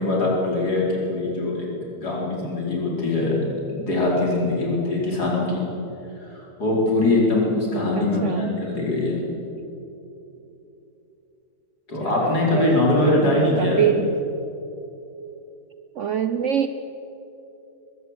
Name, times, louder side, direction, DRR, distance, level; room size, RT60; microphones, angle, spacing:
voice 1, 0.0-1.7 2.0-3.4 3.7-5.6 6.2-9.2 11.9-13.8, left 2 dB, 65° left, -3 dB, 5.2 m, -22 dB
voice 2, 8.0-8.4 12.0-14.1 16.0-16.7, right 8 dB, 60° right, 10 dB, 0.8 m, -25 dB
21.0 x 15.0 x 8.3 m, 3.0 s
omnidirectional pair, 1.8 m